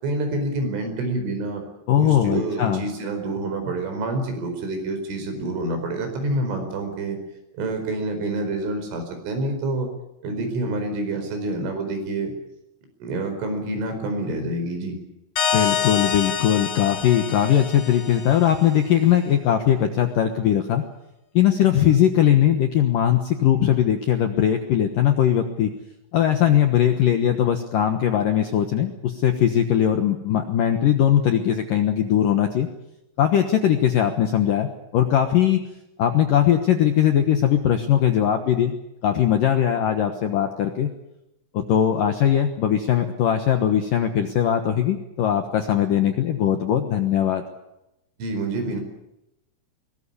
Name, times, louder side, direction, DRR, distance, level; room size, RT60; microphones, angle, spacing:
voice 1, 0.0-1.6 2.0-7.2 7.5-9.9 10.2-12.3 13.0-14.9 48.2-48.8, right 2 dB, 75° right, 6 dB, 7.2 m, -27 dB
voice 2, 1.9-2.8 15.5-20.8 21.3-25.7 26.1-32.7 33.2-35.6 36.0-38.7 39.0-40.9 41.5-47.4, left 10 dB, 70° left, 6 dB, 2.1 m, -20 dB
sound 1, 15.4-18.8, left 7 dB, 50° left, 2.6 m, -27 dB
22.0 x 20.0 x 8.5 m, 0.87 s
omnidirectional pair, 5.6 m